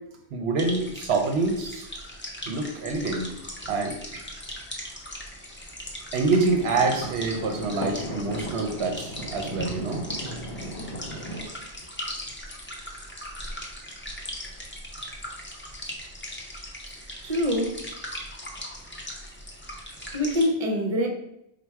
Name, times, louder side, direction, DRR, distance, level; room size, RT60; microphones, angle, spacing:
voice 1, 0.3-1.9 2.5-3.3 3.7-4.2 6.1-10.0, right 3 dB, 70° right, 0.8 m, -26 dB
sound 1, 0.6-20.5, equal, 15° left, 0.6 m, -39 dB
sound 2, 6.4-11.4, right 1 dB, 50° left, 1.0 m, -36 dB
voice 2, 17.2-17.8 20.1-21.1, left 1 dB, 40° right, 0.7 m, -24 dB
4.4 x 2.2 x 4.5 m
omnidirectional pair, 1.1 m